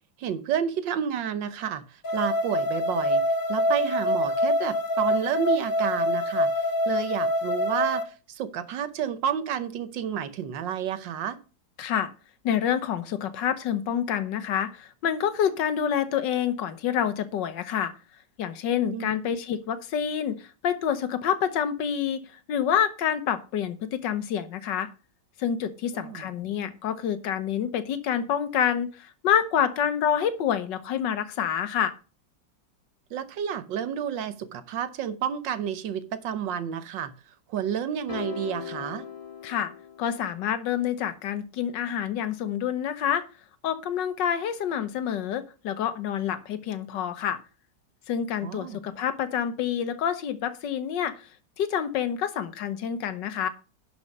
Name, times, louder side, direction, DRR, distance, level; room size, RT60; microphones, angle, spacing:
voice 1, 0.2-3.2 3.5-6.5 6.9-11.4 18.9-19.3 25.9-26.3 33.1-37.1 37.5-39.1 48.4-48.8, right 8 dB, 85° right, 12 dB, 1.6 m, -30 dB
sound 1, 2.0-8.0, left 1 dB, 35° left, 1.1 m, -25 dB
voice 2, 11.8-12.1 12.4-17.9 18.4-24.9 25.4-31.9 39.4-39.7 40.0-43.2 43.6-47.4 48.1-51.3 51.6-53.5, left 9 dB, 75° left, 12 dB, 1.6 m, -27 dB
sound 2, 38.1-40.5, left 7 dB, 20° left, 1.8 m, -38 dB
11.0 x 5.2 x 5.3 m, 0.35 s
omnidirectional pair, 1.9 m